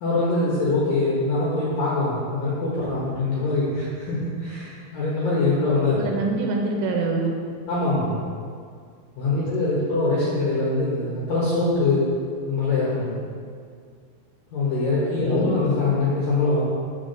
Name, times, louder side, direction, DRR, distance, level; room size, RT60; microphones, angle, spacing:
voice 1, 0.0-6.1 7.7-8.2 9.2-12.1 12.5-13.1 14.5-16.6, left 3 dB, 65° left, -8 dB, 2.3 m, -23 dB
voice 2, 6.0-7.4 9.3-9.5 9.8-9.9 15.2-15.5, right 3 dB, 80° right, 1 dB, 3.2 m, -26 dB
7.4 x 5.0 x 6.6 m, 2.1 s
omnidirectional pair, 5.9 m